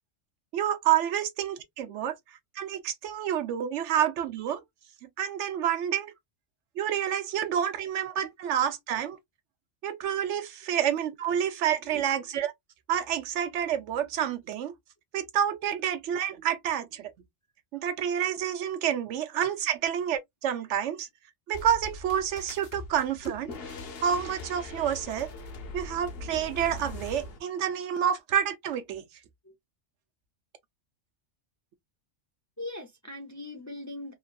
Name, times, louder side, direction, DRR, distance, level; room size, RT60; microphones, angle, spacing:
voice 1, 0.5-2.2 2.6-4.6 5.2-6.1 6.8-9.2 9.8-12.5 12.9-14.7 15.1-17.1 17.7-21.1 21.5-23.5 24.0-25.3 25.7-29.0, right 9 dB, 80° right, 0.9 m, -28 dB
sound 1, 21.5-27.4, left 2 dB, 60° left, 0.8 m, -41 dB
voice 2, 32.6-34.1, left 2 dB, 20° left, 0.5 m, -40 dB
2.9 x 2.5 x 2.2 m
omnidirectional pair, 1.2 m